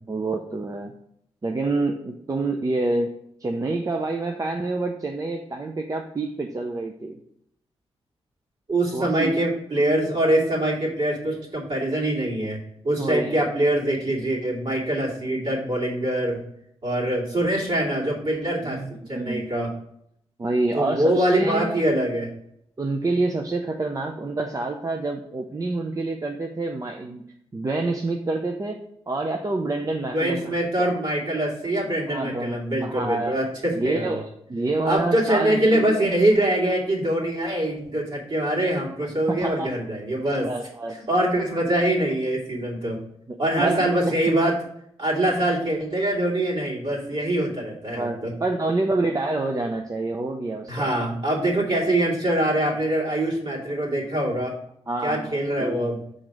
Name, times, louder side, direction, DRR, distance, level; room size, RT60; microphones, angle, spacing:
voice 1, 0.1-0.9 1.4-3.1 3.4-7.1 8.9-9.4 13.0-13.4 18.6-19.5 20.4-21.8 22.8-27.2 27.5-28.8 29.1-30.9 32.1-33.3 33.7-36.1 39.3-39.7 40.4-41.0 43.3-44.1 48.0-50.9 54.9-55.9, right 2 dB, 35° right, 3 dB, 0.6 m, -27 dB
voice 2, 8.7-16.4 16.8-18.8 19.1-19.7 20.7-22.3 30.1-34.1 34.8-40.5 41.1-43.0 43.4-44.6 45.0-48.3 50.7-54.6 55.0-56.0, right 1 dB, 50° right, -5 dB, 2.7 m, -24 dB
6.0 x 3.9 x 4.8 m, 0.74 s
cardioid pair, 60°, 11 cm